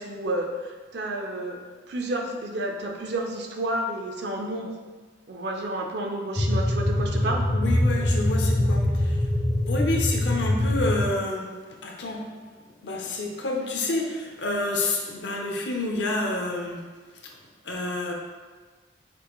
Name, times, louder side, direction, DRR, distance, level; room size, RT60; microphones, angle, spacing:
voice 1, 0.0-1.6 1.9-4.7 5.3-7.5, right 1 dB, 60° right, 2 dB, 0.6 m, -30 dB
sound 1, 6.4-11.1, left 1 dB, 15° left, 0.5 m, -23 dB
voice 2, 7.5-9.3 9.7-12.3 12.8-16.8 17.6-18.1, left 2 dB, 70° left, 0 dB, 0.7 m, -29 dB
6.0 x 2.5 x 3.0 m, 1.4 s
head